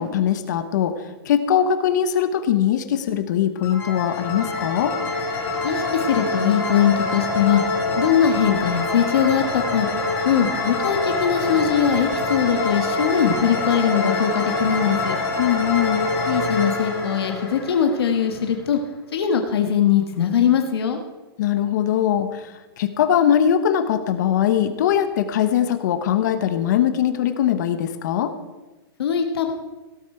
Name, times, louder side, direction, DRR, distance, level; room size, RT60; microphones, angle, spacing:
voice 1, 0.0-4.9 15.4-16.1 21.4-28.3, left 9 dB, 45° left, 11 dB, 1.0 m, -21 dB
sound 1, 3.6-18.4, left 2 dB, 15° left, 2.6 m, -25 dB
voice 2, 5.6-7.6 8.0-9.9 10.2-15.2 16.3-18.8 19.1-21.0 29.0-29.5, left 8 dB, 75° left, 5 dB, 1.6 m, -21 dB
17.0 x 8.2 x 4.5 m, 1.1 s
hypercardioid pair, 170°, 13 cm